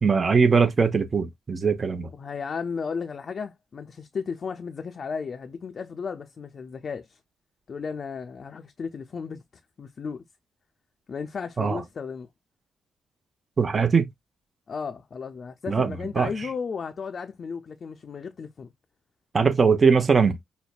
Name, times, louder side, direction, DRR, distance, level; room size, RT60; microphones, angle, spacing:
voice 1, 0.0-2.1 11.6-11.8 13.6-14.1 15.7-16.3 19.3-20.4, right 5 dB, 40° right, 0.8 m, -21 dB
voice 2, 2.2-7.2 7.7-9.4 9.8-10.2 11.1-12.3 14.7-18.7, left 5 dB, 50° left, 0.5 m, -34 dB
5.2 x 2.1 x 2.4 m
hypercardioid pair, 45°, 0 cm